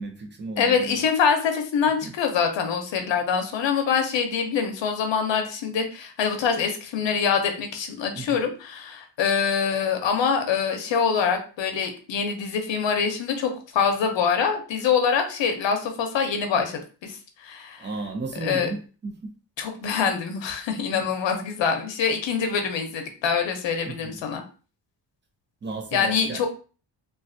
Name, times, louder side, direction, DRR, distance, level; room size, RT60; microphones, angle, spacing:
voice 1, 0.0-1.0 2.0-2.1 8.1-8.4 17.8-19.3 20.9-21.0 23.8-24.2 25.6-26.5, right 3 dB, 25° right, 0.5 m, -34 dB
voice 2, 0.6-17.2 17.4-17.9 18.4-18.7 19.6-24.4 25.9-26.5, left 6 dB, 80° left, 0.7 m, -25 dB
3.2 x 2.3 x 2.5 m
wide cardioid pair, 170°, 44 cm